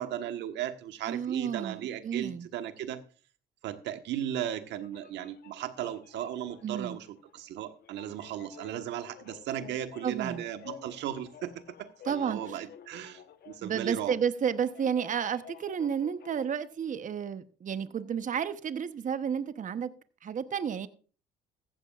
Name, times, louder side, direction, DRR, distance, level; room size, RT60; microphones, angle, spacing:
voice 1, 0.0-3.0 3.6-11.5 11.8-14.1, right 11 dB, 75° right, 1.4 m, -36 dB
voice 2, 1.1-2.5 6.6-7.0 10.0-10.4 12.0-12.7 13.6-19.9 20.2-20.9, right 7 dB, 45° right, 1.0 m, -31 dB
sound 1, 4.4-16.5, left 10 dB, 60° left, 1.2 m, -52 dB
15.0 x 14.0 x 2.5 m
supercardioid pair, 75°, 19 cm